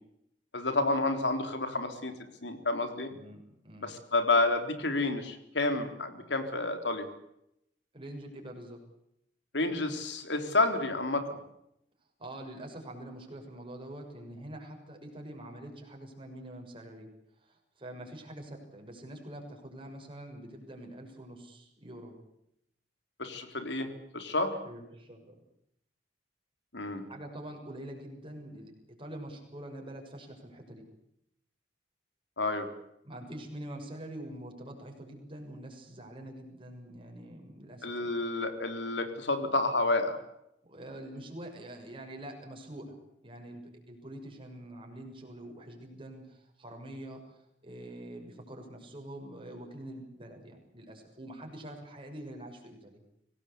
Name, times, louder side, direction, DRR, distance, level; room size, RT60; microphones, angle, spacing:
voice 1, 0.5-2.1 2.4-3.1 3.8-7.1 9.5-11.4 23.2-23.9 24.1-24.6 26.7-27.1 32.4-32.7 37.8-40.2, left 2 dB, 75° left, 7 dB, 3.8 m, -29 dB
voice 2, 3.1-4.0 7.9-8.8 12.2-17.1 17.4-22.2 24.6-25.3 27.1-30.8 33.0-38.2 40.6-53.0, right 1 dB, 30° right, 2 dB, 6.5 m, -45 dB
25.0 x 18.5 x 8.5 m, 0.78 s
head